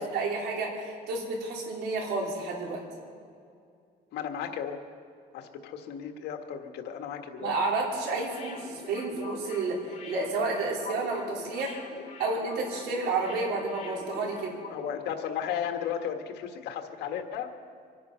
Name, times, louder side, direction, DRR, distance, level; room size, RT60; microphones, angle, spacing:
voice 1, 0.1-2.8 7.4-11.8 12.2-14.5, right 3 dB, 80° right, -2 dB, 4.1 m, -30 dB
voice 2, 4.1-4.8 5.3-7.5 14.7-17.5, left 8 dB, 80° left, 5 dB, 1.6 m, -34 dB
sound 1, 8.2-14.8 15.1-15.2, left 4 dB, 40° left, 3.1 m, -44 dB
25.5 x 9.7 x 5.7 m, 2.3 s
cardioid pair, 110°, 17 cm